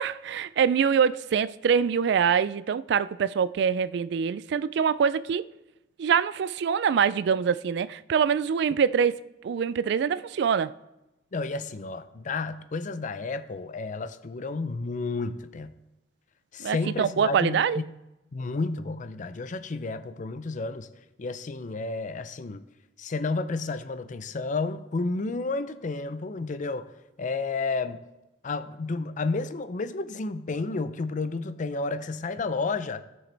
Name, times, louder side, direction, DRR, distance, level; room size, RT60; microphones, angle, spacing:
voice 1, 0.0-5.5 6.0-9.2 9.4-10.7 16.6-17.8, right 7 dB, 65° right, 0.3 m, -24 dB
voice 2, 11.3-15.8 16.5-17.8 18.3-20.9 21.2-22.6 23.0-26.9 27.2-28.0 28.4-33.0, left 3 dB, 45° left, 0.5 m, -31 dB
16.5 x 6.3 x 3.3 m
head